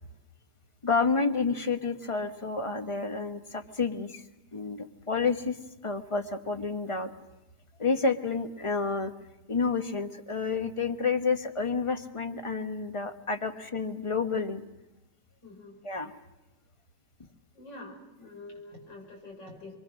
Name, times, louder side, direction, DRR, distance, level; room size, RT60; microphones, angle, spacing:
voice 1, 0.8-4.2 4.5-5.6 5.8-7.1 7.8-9.1 9.5-14.6 15.8-16.1, left 4 dB, 20° left, 6 dB, 1.1 m, -29 dB
voice 2, 15.4-15.8 17.5-19.8, left 2 dB, 90° left, 0 dB, 6.6 m, -46 dB
26.5 x 23.5 x 6.3 m, 0.97 s
omnidirectional pair, 1.9 m